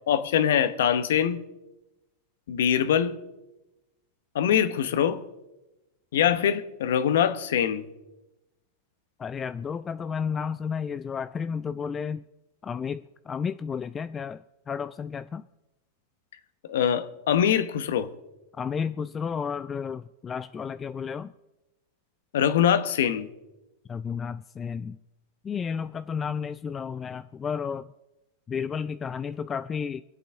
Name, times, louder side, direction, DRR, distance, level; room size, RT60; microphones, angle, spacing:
voice 1, 0.1-1.4 2.5-3.2 4.3-5.2 6.1-7.8 16.7-18.1 22.3-23.3, left 9 dB, 80° left, 12 dB, 1.0 m, -23 dB
voice 2, 9.2-12.2 12.6-15.4 18.6-21.3 23.9-25.0 25.4-27.9 28.5-30.0, left 6 dB, 20° left, 13 dB, 0.3 m, -32 dB
24.0 x 8.4 x 3.6 m, 1.0 s
hypercardioid pair, 125°, 0 cm